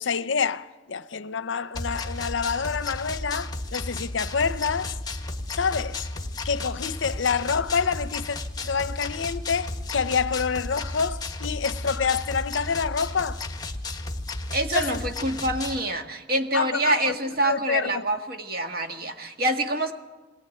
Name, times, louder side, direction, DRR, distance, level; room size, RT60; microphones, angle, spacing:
voice 1, 0.0-5.0 5.5-6.1 6.4-8.4 8.6-13.4 14.7-15.1 16.5-18.1, left 6 dB, 65° left, 0.6 m, -27 dB
sound 1, 1.7-15.8, left 2 dB, 20° left, 1.3 m, -33 dB
voice 2, 14.5-19.9, right 1 dB, 50° right, 1.7 m, -26 dB
21.0 x 18.5 x 9.2 m
head